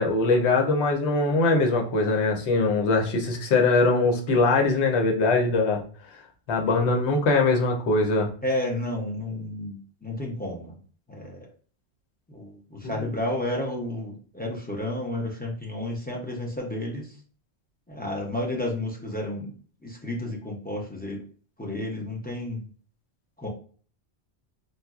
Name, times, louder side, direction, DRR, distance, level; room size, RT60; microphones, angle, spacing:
voice 1, 0.0-5.8 6.5-8.3 12.8-13.1, left 3 dB, 80° left, 3 dB, 0.9 m, -22 dB
voice 2, 8.4-10.8 11.1-11.5 12.3-17.2 17.9-19.5 19.8-21.2 21.6-22.7 23.4-23.5, left 1 dB, 15° left, -2 dB, 0.3 m, -31 dB
4.0 x 2.0 x 2.3 m, 0.42 s
omnidirectional pair, 1.1 m